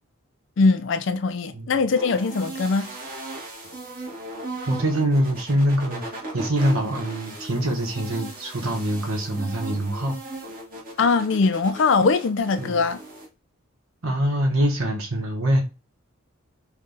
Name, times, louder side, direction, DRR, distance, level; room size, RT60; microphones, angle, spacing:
voice 1, 0.6-2.9 11.0-13.0, left 4 dB, 60° left, 0.4 m, -21 dB
sound 1, 2.0-13.3, right 2 dB, 40° right, 1.5 m, -37 dB
voice 2, 4.7-6.0 6.3-10.2 12.6-12.8 14.0-15.6, right 1 dB, 75° right, 1.1 m, -24 dB
5.2 x 2.3 x 3.9 m
head